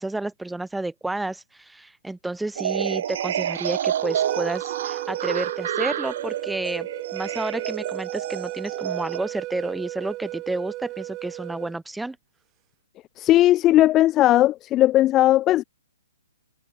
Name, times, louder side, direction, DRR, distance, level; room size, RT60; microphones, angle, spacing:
voice 1, 0.0-12.2, right 2 dB, 5° right, 3.5 m, -31 dB
sound 1, 2.6-9.2, right 10 dB, 45° right, 4.7 m, -29 dB
sound 2, 4.0-11.7, right 18 dB, 25° right, 7.3 m, -35 dB
voice 2, 13.2-15.6, left 14 dB, 20° left, 1.1 m, -17 dB
figure-of-eight pair, 125°, 0 cm